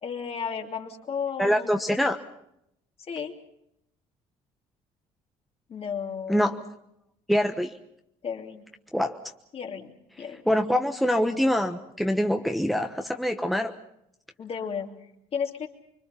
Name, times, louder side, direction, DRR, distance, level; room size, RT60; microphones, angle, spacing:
voice 1, 0.0-1.8 3.0-3.3 5.7-6.6 8.2-8.6 9.5-10.4 14.4-15.7, left 6 dB, 45° left, 2 dB, 2.9 m, -34 dB
voice 2, 1.4-2.2 6.3-6.6 7.3-7.7 8.9-9.2 10.5-13.7, equal, ahead, 4 dB, 1.2 m, -24 dB
25.0 x 23.0 x 5.8 m, 0.79 s
cardioid pair, 90°, 14 cm